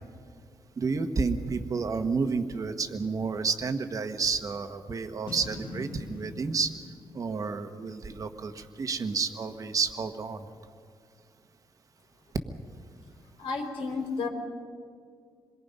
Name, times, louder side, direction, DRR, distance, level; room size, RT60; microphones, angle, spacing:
voice 1, 0.8-6.7 7.1-10.5, right 4 dB, 40° right, 8 dB, 1.3 m, -30 dB
Boom, 5.3-8.6, left 2 dB, 65° left, 1.9 m, -43 dB
voice 2, 13.4-14.3, left 4 dB, 80° left, 2 dB, 3.7 m, -32 dB
26.5 x 22.0 x 5.5 m, 2.2 s
wide cardioid pair, 150°, 9 cm